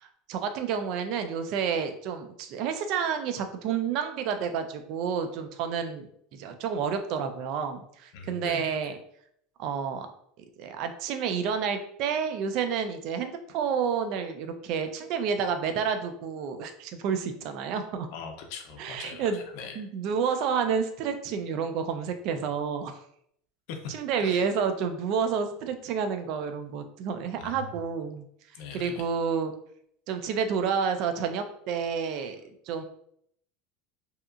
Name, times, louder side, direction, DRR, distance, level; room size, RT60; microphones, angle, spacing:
voice 1, 0.0-9.0 9.6-10.1 10.6-18.1 18.8-19.4 19.8-23.0 23.9-28.2 28.7-29.5 30.1-32.4 32.7-32.8, right 6 dB, 50° right, 8 dB, 0.3 m, -30 dB
voice 2, 8.1-8.9 18.1-19.9 23.7-23.9 24.2-24.5 27.4-27.8 28.5-29.1, left 5 dB, 60° left, 5 dB, 0.5 m, -41 dB
2.7 x 2.3 x 2.4 m, 0.68 s
supercardioid pair, 155°, 0 cm